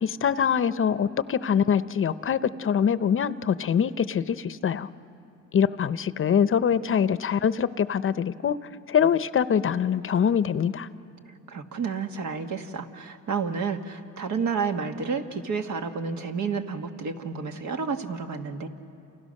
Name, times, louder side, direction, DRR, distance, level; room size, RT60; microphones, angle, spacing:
voice 1, 0.0-4.9 5.5-8.6 8.9-10.9, left 8 dB, 45° left, 14 dB, 0.7 m, -24 dB
voice 2, 11.5-18.7, right 5 dB, 70° right, 5 dB, 1.7 m, -30 dB
28.5 x 28.5 x 6.5 m, 2.7 s
cardioid pair, 90°, 30 cm